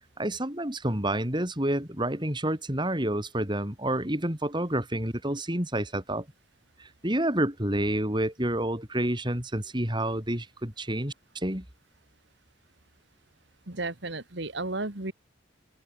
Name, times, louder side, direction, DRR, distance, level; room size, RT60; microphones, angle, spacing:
voice 1, 0.2-6.2 6.8-11.6, right 1 dB, 25° right, 4.6 m, -29 dB
voice 2, 13.7-15.1, right 2 dB, 60° right, 2.2 m, -33 dB
head